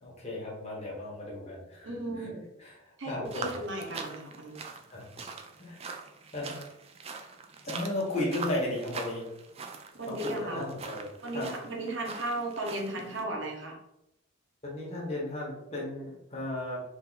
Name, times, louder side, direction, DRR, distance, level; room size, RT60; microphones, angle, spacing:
voice 1, 0.0-2.3 2.6-3.5 4.9-5.1 5.6-5.9 6.3-6.5 7.6-9.3 10.0-11.5 14.6-16.9, left 1 dB, 30° left, -4 dB, 1.3 m, -35 dB
voice 2, 1.8-2.4 3.0-4.6 5.2-5.3 9.9-10.6 11.2-13.8, right 1 dB, 60° right, 0 dB, 1.0 m, -35 dB
sound 1, 3.2-13.2, right 4 dB, 30° right, 0.4 m, -43 dB
3.6 x 2.7 x 4.1 m, 0.85 s
head